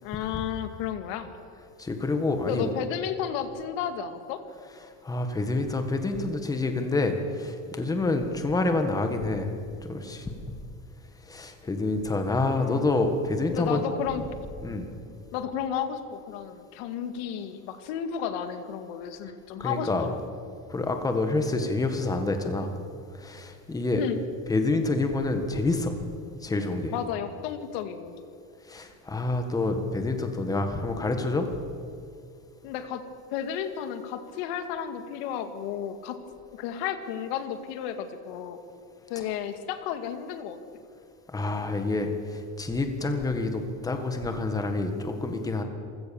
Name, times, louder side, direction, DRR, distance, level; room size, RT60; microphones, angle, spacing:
voice 1, 0.0-1.3 2.4-4.4 12.5-12.9 13.5-14.2 15.3-20.2 24.0-24.2 26.9-28.1 32.6-33.0 33.3-36.2 36.5-38.6 39.1-40.6, left 9 dB, 60° left, 8 dB, 2.1 m, -33 dB
voice 2, 1.8-2.7 5.0-9.5 9.8-10.3 11.3-13.8 14.6-14.9 19.6-20.1 20.7-22.7 23.1-24.0 24.5-25.9 26.4-26.9 28.7-31.5 41.3-45.6, left 2 dB, 10° left, 6 dB, 1.6 m, -27 dB
27.0 x 16.5 x 7.1 m, 2.3 s
cardioid pair, 170°, 39 cm